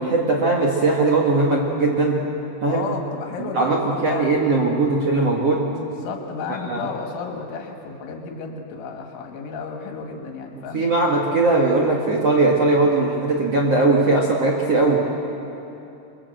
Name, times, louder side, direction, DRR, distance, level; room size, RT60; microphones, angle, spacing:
voice 1, 0.0-2.2 2.6-2.9 3.4-5.7 6.7-6.8 10.7-15.0, right 3 dB, 65° right, -2 dB, 1.6 m, -19 dB
voice 2, 2.7-4.3 5.9-10.8, left 5 dB, 80° left, 2 dB, 4.0 m, -32 dB
23.5 x 23.5 x 7.8 m, 2.9 s
omnidirectional pair, 5.5 m